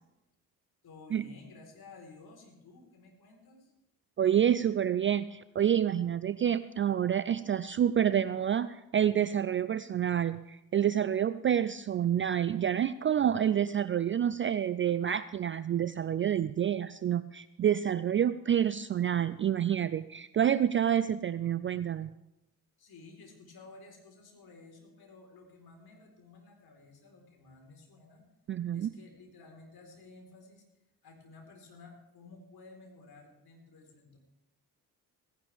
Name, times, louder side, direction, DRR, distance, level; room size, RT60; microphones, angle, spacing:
voice 1, 0.8-3.7 22.8-28.2 28.7-30.6 31.0-34.2, left 3 dB, 50° left, 1 dB, 4.2 m, -54 dB
voice 2, 4.2-22.1 28.5-28.9, right 9 dB, 25° right, 16 dB, 0.4 m, -28 dB
17.5 x 16.5 x 3.5 m, 0.90 s
figure-of-eight pair, 45°, 48 cm